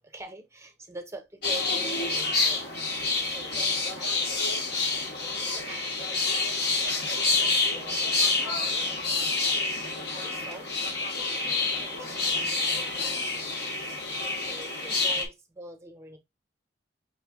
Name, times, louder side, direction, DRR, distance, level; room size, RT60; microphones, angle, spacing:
voice 1, 0.1-2.6 3.0-4.1 5.3-6.5 6.7-6.9 7.4-8.1 8.4-8.8 9.1-9.6 10.1-10.7 11.3-12.4 12.8-13.8 14.5-16.2, right 2 dB, 15° right, 0.8 m, -45 dB
sound 1, 1.4-15.3, left 3 dB, 65° left, 1.1 m, -28 dB
5.6 x 2.3 x 3.5 m
head